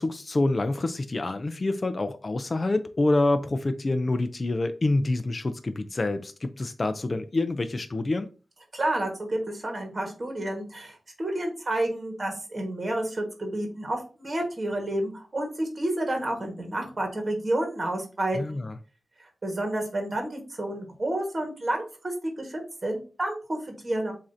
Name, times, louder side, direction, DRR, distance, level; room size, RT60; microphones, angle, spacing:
voice 1, 0.0-8.3 18.3-18.8, left 2 dB, 30° left, 0.3 m, -27 dB
voice 2, 8.7-18.6 19.4-24.1, right 1 dB, 30° right, 1.2 m, -30 dB
7.3 x 2.5 x 2.6 m
wide cardioid pair, 150°, 0 cm